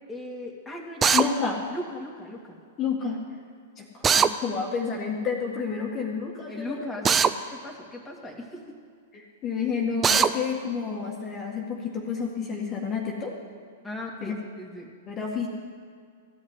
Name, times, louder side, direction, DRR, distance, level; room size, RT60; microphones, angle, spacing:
voice 1, 0.1-1.3 1.7-2.6 6.5-8.8 13.8-14.9, left 1 dB, 5° left, -2 dB, 2.3 m, -38 dB
Drill, 1.0-1.3 4.0-4.3 7.0-7.3 10.0-10.3, right 6 dB, 20° right, 0.5 m, -19 dB
voice 2, 1.1-1.6 2.8-3.2 3.8-7.1 9.1-13.4 14.2-14.3 15.1-15.5, left 6 dB, 30° left, -1 dB, 1.8 m, -30 dB
15.0 x 5.7 x 9.6 m, 2.2 s
hypercardioid pair, 105°, 0 cm